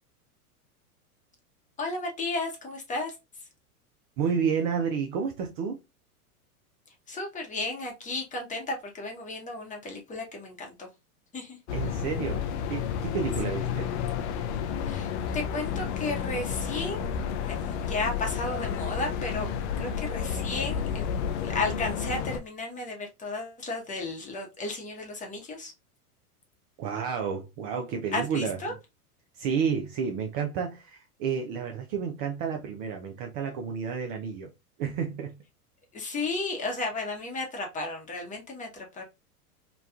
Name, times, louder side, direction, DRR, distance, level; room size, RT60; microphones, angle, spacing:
voice 1, 1.8-3.2 7.1-10.9 11.3-11.6 14.8-17.1 17.4-19.5 19.8-21.1 21.4-25.7 28.1-28.7 35.9-39.0, left 2 dB, 15° left, 0.8 m, -33 dB
voice 2, 4.2-5.8 11.7-13.9 26.8-28.6 29.3-34.5 34.8-35.4, right 6 dB, 35° right, 0.4 m, -30 dB
sound 1, 11.7-22.4, left 7 dB, 50° left, 0.4 m, -31 dB
2.9 x 2.2 x 2.3 m
hypercardioid pair, 110°, 45 cm